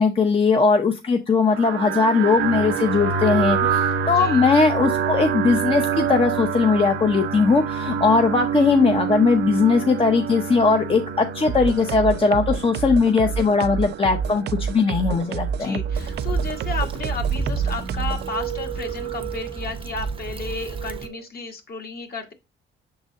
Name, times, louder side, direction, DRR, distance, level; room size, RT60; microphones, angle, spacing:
voice 1, 0.0-15.8, left 4 dB, 25° left, 4 dB, 0.7 m, -19 dB
sound 1, 1.5-21.2, right 7 dB, 85° right, 0.8 m, -28 dB
sound 2, 11.5-18.3, right 7 dB, 55° right, 0.4 m, -28 dB
voice 2, 15.3-22.3, left 4 dB, 50° left, 4 dB, 1.5 m, -33 dB
Stream / Traffic noise roadway noise / Trickle dribble, 15.9-21.1, right 4 dB, 25° right, 0.8 m, -31 dB
6.2 x 4.0 x 3.8 m, 0.24 s
cardioid pair, 90°, 20 cm